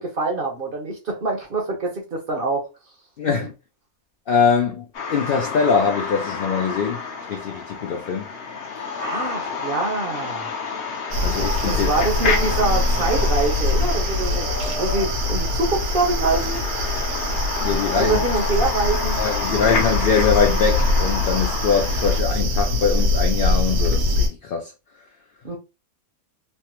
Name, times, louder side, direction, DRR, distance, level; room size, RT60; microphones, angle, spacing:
voice 1, 0.0-2.7 9.0-10.5 11.6-16.6 18.0-19.2 25.4-25.6, right 3 dB, 50° right, 0.7 m, -25 dB
voice 2, 3.2-3.5 4.3-8.3 11.2-11.9 17.6-18.2 19.2-24.7, left 6 dB, 90° left, 0.5 m, -22 dB
sound 1, 4.9-22.2, left 4 dB, 55° left, 0.8 m, -29 dB
sound 2, 11.1-24.3, left 1 dB, 70° right, 1.1 m, -23 dB
3.2 x 2.1 x 2.9 m
omnidirectional pair, 1.5 m